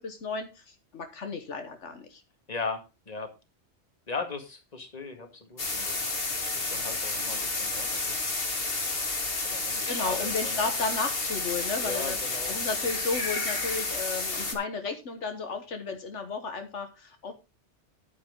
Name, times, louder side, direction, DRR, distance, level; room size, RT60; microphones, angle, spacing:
voice 1, 0.0-2.2 9.9-12.2 12.5-17.3, left 4 dB, 80° left, 6 dB, 1.6 m, -33 dB
voice 2, 2.5-3.3 4.1-6.1 6.5-8.6 9.4-10.7 11.8-12.6, left 4 dB, 35° left, 5 dB, 2.1 m, -38 dB
sound 1, 5.6-14.5, left 3 dB, 55° left, 2.2 m, -31 dB
10.0 x 9.3 x 3.8 m, 0.27 s
omnidirectional pair, 1.2 m